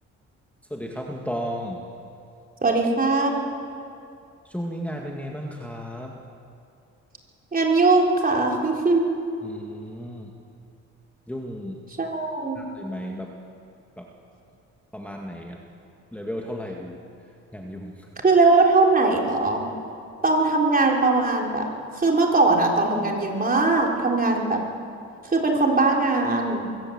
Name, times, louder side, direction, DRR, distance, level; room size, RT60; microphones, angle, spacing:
voice 1, 0.7-1.8 4.4-6.2 9.4-10.3 11.3-11.8 12.5-13.3 14.0-14.1 14.9-15.6 16.1-17.0 17.5-18.1, equal, 5° left, 0 dB, 2.1 m, -34 dB
voice 2, 2.6-3.3 7.5-9.0 12.0-12.6 18.2-19.6 20.2-21.7 22.0-24.6 25.3-26.7, right 3 dB, 30° right, 0 dB, 4.0 m, -20 dB
22.5 x 16.5 x 8.0 m, 2.5 s
cardioid pair, 90°, 30 cm